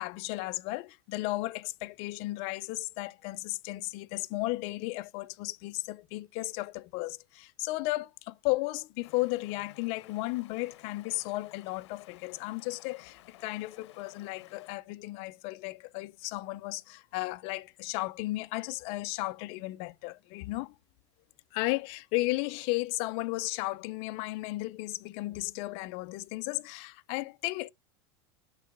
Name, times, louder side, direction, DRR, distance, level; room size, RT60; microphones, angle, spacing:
voice 1, 0.0-20.7 21.5-27.7, left 21 dB, 40° left, 0.5 m, -34 dB
Stream, 9.0-14.8, left 14 dB, 85° left, 0.7 m, -56 dB
11.5 x 3.9 x 3.4 m
supercardioid pair, 165°, 14 cm